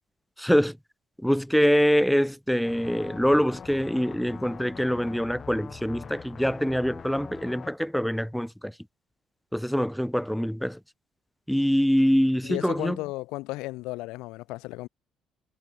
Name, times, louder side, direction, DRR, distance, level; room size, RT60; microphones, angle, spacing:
voice 1, 0.4-0.8 1.2-8.7 9.5-10.8 11.5-13.0, equal, ahead, 0.7 m, -24 dB
sound 1, 2.6-7.7, left 6 dB, 40° left, 3.4 m, -43 dB
voice 2, 12.4-14.9, left 20 dB, 60° left, 0.4 m, -34 dB
figure-of-eight pair, 50°, 0 cm